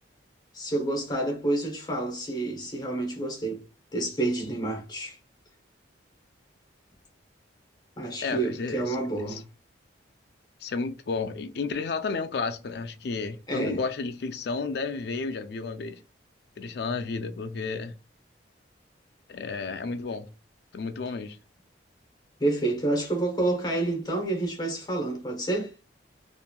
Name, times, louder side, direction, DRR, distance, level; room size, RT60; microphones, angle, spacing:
voice 1, 0.5-3.6 3.9-5.2 8.0-9.4 13.5-13.8 22.4-25.7, right 2 dB, 20° left, 0.8 m, -29 dB
voice 2, 8.2-9.0 9.3-9.4 10.6-16.0 16.6-17.9 19.3-20.3 20.7-21.4, left 4 dB, 55° left, 0.4 m, -32 dB
2.9 x 2.5 x 2.2 m
head